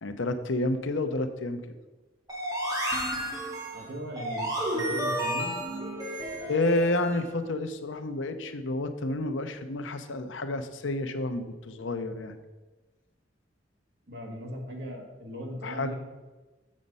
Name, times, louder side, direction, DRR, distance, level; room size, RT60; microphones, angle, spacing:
voice 1, 0.0-1.6 6.5-12.3 15.6-15.9, left 2 dB, 85° left, 9 dB, 0.7 m, -30 dB
sound 1, 2.3-7.2, right 1 dB, 20° right, 2.2 m, -32 dB
voice 2, 3.7-5.5 14.1-16.0, equal, 65° right, 0 dB, 1.8 m, -38 dB
7.4 x 5.2 x 5.4 m, 1.2 s
head